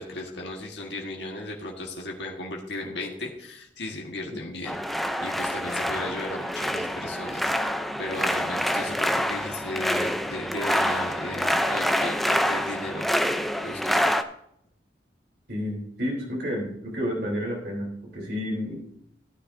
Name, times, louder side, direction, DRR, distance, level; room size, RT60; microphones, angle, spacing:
voice 1, 0.0-13.4 13.6-14.1, left 2 dB, 70° left, -1 dB, 1.6 m, -36 dB
sound 1, 4.6-14.2, equal, ahead, 0.5 m, -26 dB
voice 2, 15.5-18.9, equal, 60° right, -1 dB, 3.5 m, -30 dB
15.0 x 9.5 x 2.7 m, 0.72 s
head